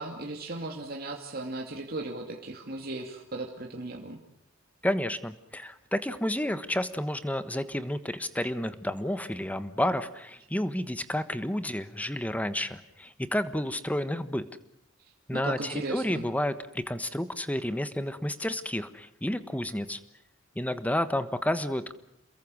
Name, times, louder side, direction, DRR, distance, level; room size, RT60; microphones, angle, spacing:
voice 1, 0.0-4.2 15.3-16.2, right 2 dB, 50° right, 0 dB, 2.5 m, -36 dB
voice 2, 4.8-14.5 15.3-20.0 20.5-21.9, left 1 dB, 10° left, 12 dB, 1.3 m, -31 dB
28.5 x 22.0 x 6.4 m, 0.79 s
head